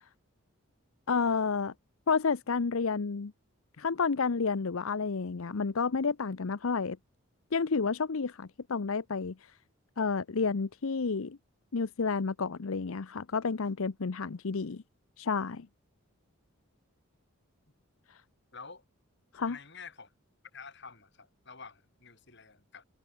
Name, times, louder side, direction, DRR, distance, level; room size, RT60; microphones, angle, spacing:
voice 1, 1.1-1.7 2.1-3.3 3.8-7.0 7.5-9.5 10.0-11.4 11.7-14.8 15.2-15.7 19.3-19.6, left 5 dB, 70° left, 0.7 m, -30 dB
voice 2, 18.5-18.8 19.5-20.1 20.5-22.8, left 5 dB, 50° left, 3.5 m, -49 dB
head